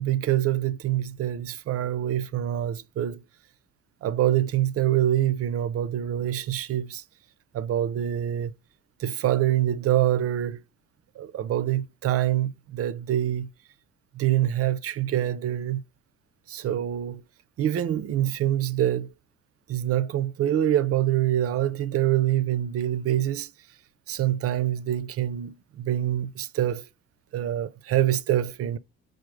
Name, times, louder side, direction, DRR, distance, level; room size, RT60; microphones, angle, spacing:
voice 1, 0.0-3.2 4.0-7.0 7.5-8.5 9.0-10.6 11.2-13.5 14.1-15.8 16.5-17.2 17.6-19.1 19.7-23.5 24.1-26.9 27.3-28.8, right 12 dB, 50° right, 0.4 m, -25 dB
4.8 x 2.0 x 3.1 m
cardioid pair, 90°, 30 cm